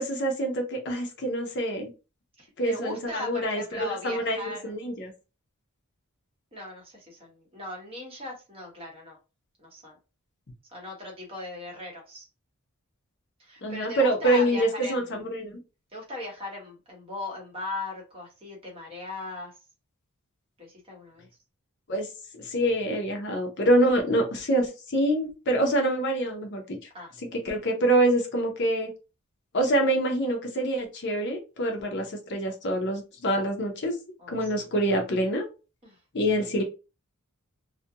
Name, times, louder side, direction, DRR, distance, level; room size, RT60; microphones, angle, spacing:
voice 1, 0.0-1.9 2.6-5.1 13.6-15.5 21.9-22.1 22.3-26.8 27.4-28.9 29.5-33.9 34.3-35.5 36.1-36.6, right 1 dB, 50° left, 3 dB, 0.6 m, -26 dB
voice 2, 2.4-4.7 6.5-9.2 9.6-10.0 10.7-12.3 13.4-15.3 15.9-19.5 20.6-21.3 26.9-27.1 34.2-34.7 35.8-36.0 36.4-36.5, left 2 dB, 25° right, -1 dB, 1.0 m, -38 dB
2.5 x 2.2 x 2.7 m, 0.31 s
head